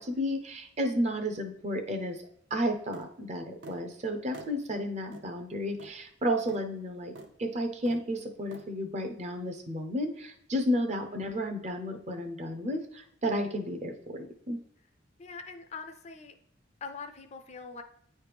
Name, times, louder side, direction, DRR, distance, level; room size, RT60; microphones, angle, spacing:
voice 1, 0.0-2.2 2.5-7.1 7.4-14.6, equal, 35° right, 5 dB, 0.6 m, -32 dB
sound 1, 2.9-3.1 3.6-3.8 4.3-4.5 5.1-5.3 5.8-6.0 6.5-6.6 7.2-7.3 7.9-8.0 8.5-8.7, right 2 dB, 75° right, 0.7 m, -46 dB
voice 2, 15.2-16.3 16.8-17.8, left 4 dB, 35° left, 6 dB, 0.4 m, -43 dB
9.1 x 3.2 x 3.3 m, 0.69 s
head